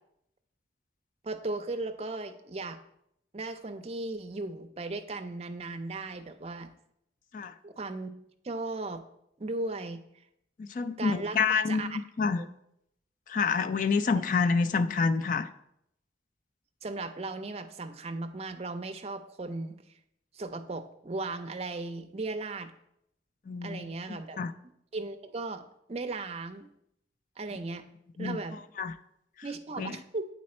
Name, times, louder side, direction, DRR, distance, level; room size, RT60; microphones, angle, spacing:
voice 1, 1.2-2.8 3.3-6.7 7.6-8.1 8.4-9.0 9.4-10.0 11.0-11.4 11.7-12.0 12.4-12.5 16.8-19.7 20.3-22.7 23.6-24.4 24.9-25.6 25.9-26.7 27.4-27.8 28.2-28.6 29.4-30.3, right 3 dB, 35° right, 8 dB, 0.5 m, -36 dB
voice 2, 10.6-12.4 13.3-15.5 23.5-24.5 28.2-28.4 28.8-28.9 29.8-30.0, left 5 dB, 45° left, 10 dB, 0.3 m, -28 dB
8.7 x 4.3 x 4.2 m, 0.78 s
head